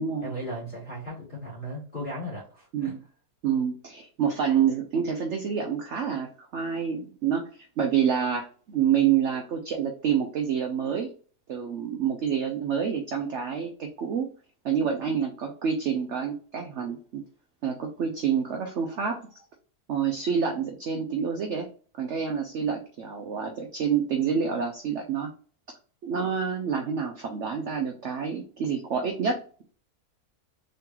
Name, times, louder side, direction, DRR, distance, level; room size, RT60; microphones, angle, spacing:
voice 1, 0.2-2.9, equal, 30° left, -9 dB, 2.0 m, -36 dB
voice 2, 3.4-11.1 11.5-14.3 14.6-17.2 17.6-19.3 19.9-21.7 22.0-25.3 26.0-29.4, right 7 dB, 60° right, 3 dB, 0.8 m, -27 dB
3.8 x 3.7 x 2.9 m, 0.41 s
omnidirectional pair, 1.7 m